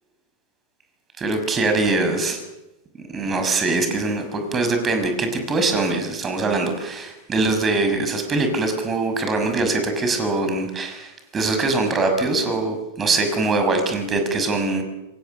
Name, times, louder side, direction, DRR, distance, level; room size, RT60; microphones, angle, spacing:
voice 1, 1.2-2.4 3.1-14.8, right 3 dB, 20° right, 6 dB, 6.1 m, -22 dB
26.5 x 26.0 x 6.7 m, 0.97 s
figure-of-eight pair, 90°, 0 cm